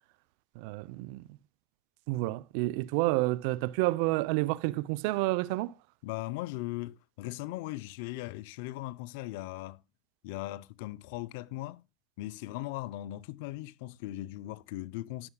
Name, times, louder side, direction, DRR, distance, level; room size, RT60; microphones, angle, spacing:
voice 1, 0.6-1.2 2.1-5.7, right 20 dB, 80° right, 0.5 m, -29 dB
voice 2, 6.0-9.8 10.2-11.8 12.2-15.3, left 16 dB, 80° left, 0.6 m, -38 dB
17.5 x 6.9 x 2.2 m
supercardioid pair, 95°, 0 cm